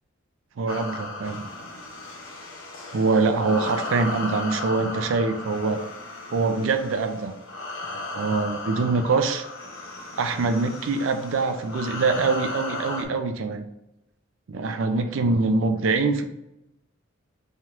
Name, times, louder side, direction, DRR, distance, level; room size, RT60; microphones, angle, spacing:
voice 1, 0.6-1.4 2.9-5.8 6.3-7.3 8.1-9.4 10.2-13.6 14.5-16.2, right 3 dB, 70° right, 7 dB, 0.4 m, -24 dB
sound 1, 0.7-13.0, left 2 dB, 70° left, 0.7 m, -35 dB
3.2 x 2.9 x 3.6 m, 0.88 s
head